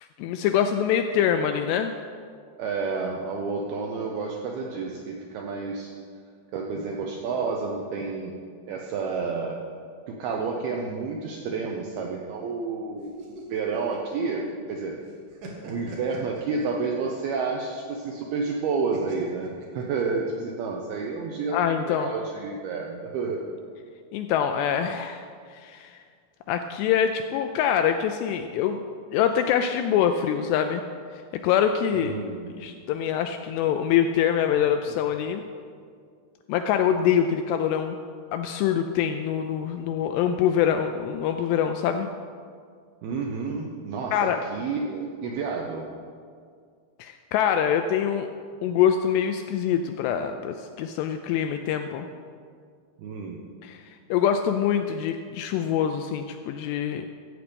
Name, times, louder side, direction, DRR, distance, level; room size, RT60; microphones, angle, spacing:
voice 1, 0.2-1.9 21.5-22.1 24.1-25.2 25.5-26.0 26.5-28.8 29.1-30.8 31.4-32.1 32.6-35.4 36.5-38.0 38.3-42.1 44.1-44.4 47.0-48.3 48.6-52.1 53.6-53.8 54.1-57.1, left 9 dB, 85° left, 6 dB, 2.4 m, -24 dB
voice 2, 2.6-5.9 6.5-8.3 8.7-9.6 10.1-13.1 13.5-15.0 15.6-23.4 31.9-32.6 43.0-45.9 53.0-53.4, right 4 dB, 80° right, 0 dB, 2.3 m, -30 dB
sound 1, 13.0-14.7 15.1-17.3 18.9-20.4, right 2 dB, 60° right, 2.6 m, -43 dB
14.5 x 8.2 x 5.2 m, 2.1 s
omnidirectional pair, 5.3 m